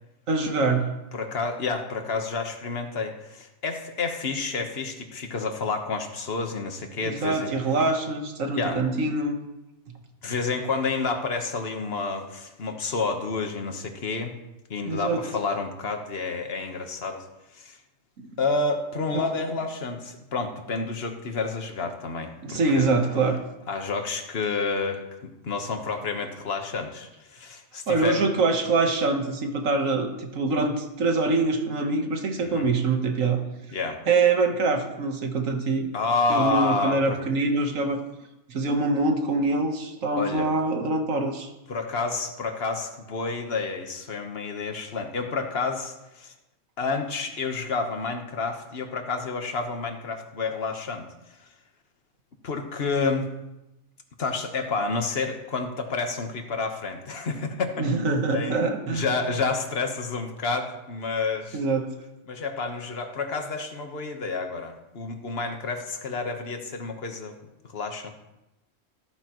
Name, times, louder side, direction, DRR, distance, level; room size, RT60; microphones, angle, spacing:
voice 1, 0.3-0.9 7.0-9.4 14.9-15.2 18.2-18.3 19.1-19.3 22.4-23.4 27.9-33.4 34.1-35.9 36.3-38.0 38.5-41.5 57.8-59.1 61.5-61.9, right 3 dB, 90° right, 4 dB, 1.7 m, -24 dB
voice 2, 1.1-7.5 8.5-8.8 10.2-14.3 14.7-17.2 17.5-17.8 18.4-22.9 23.7-28.2 32.4-32.7 33.7-34.0 35.9-37.2 40.2-40.5 41.7-46.3 46.8-51.1 52.4-53.3 54.2-58.6 58.9-61.6 62.3-67.3 67.6-68.1, left 4 dB, 50° left, 5 dB, 1.5 m, -29 dB
13.5 x 13.5 x 3.1 m, 0.95 s
omnidirectional pair, 1.3 m